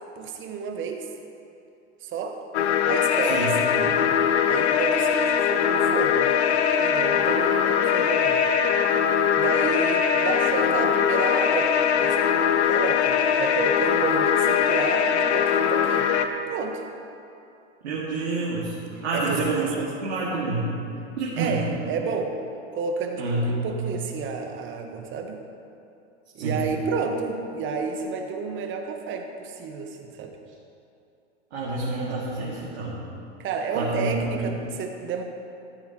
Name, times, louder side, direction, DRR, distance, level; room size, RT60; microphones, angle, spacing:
voice 1, 0.2-1.1 2.0-2.4 2.8-4.1 4.5-6.4 6.8-8.4 9.3-11.7 12.0-12.3 12.6-16.1 16.5-16.8 19.0-19.9 21.4-22.4 22.7-25.4 26.3-30.4 33.4-35.2, right 5 dB, 35° right, 4 dB, 1.4 m, -31 dB
sound 1, 2.5-16.3, left 8 dB, 65° left, 0.9 m, -21 dB
voice 2, 17.8-18.7 19.0-19.7 20.0-20.7 21.2-21.6 23.2-23.9 26.4-26.6 31.5-32.9 33.7-34.4, right 3 dB, 70° right, -7 dB, 2.5 m, -27 dB
14.0 x 13.0 x 3.1 m, 2.6 s
hypercardioid pair, 100°, 35 cm